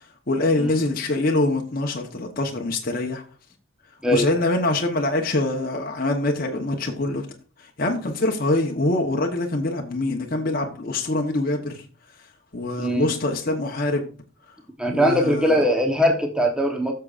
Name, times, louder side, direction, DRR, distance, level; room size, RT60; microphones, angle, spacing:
voice 1, 0.0-3.2 4.1-7.3 7.6-11.8 12.5-14.1 14.9-15.6, left 2 dB, 45° left, 1 dB, 0.9 m, -24 dB
voice 2, 12.8-13.1 14.8-16.9, equal, 5° right, 2 dB, 0.9 m, -21 dB
14.5 x 6.7 x 2.5 m, 0.38 s
head